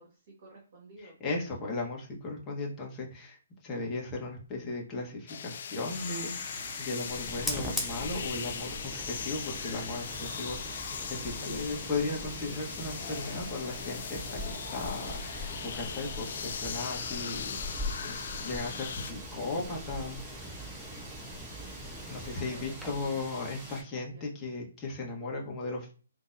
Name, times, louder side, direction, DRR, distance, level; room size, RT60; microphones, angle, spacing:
voice 1, 0.0-1.1 1.6-1.7 11.5-11.6 17.4-17.7 22.2-23.5 24.1-24.3, right 2 dB, 50° right, -3 dB, 1.5 m, -53 dB
voice 2, 1.2-3.4 3.6-20.6 22.1-25.9, left 3 dB, 20° left, -2 dB, 1.2 m, -36 dB
sound 1, 5.3-19.1, left 7 dB, 55° left, 0.3 m, -39 dB
sound 2, 5.9-23.8, right 1 dB, 15° right, 1.6 m, -46 dB
Fire, 7.1-23.2, left 1 dB, ahead, 0.5 m, -42 dB
3.7 x 2.7 x 2.6 m, 0.37 s
hypercardioid pair, 140°, 0 cm